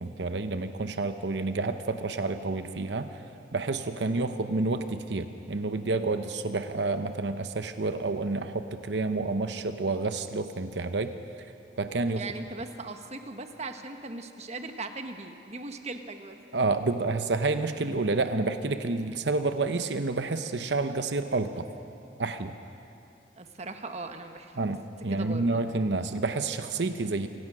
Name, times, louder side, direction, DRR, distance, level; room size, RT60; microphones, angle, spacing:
voice 1, 0.0-3.1 3.5-11.1 11.8-12.2 16.5-21.7 22.2-22.6 24.6-27.3, right 3 dB, 75° right, 9 dB, 0.8 m, -29 dB
voice 2, 12.2-16.4 23.4-24.6 25.1-25.7, right 3 dB, 40° right, 6 dB, 1.2 m, -39 dB
26.5 x 17.5 x 6.1 m, 2.7 s
head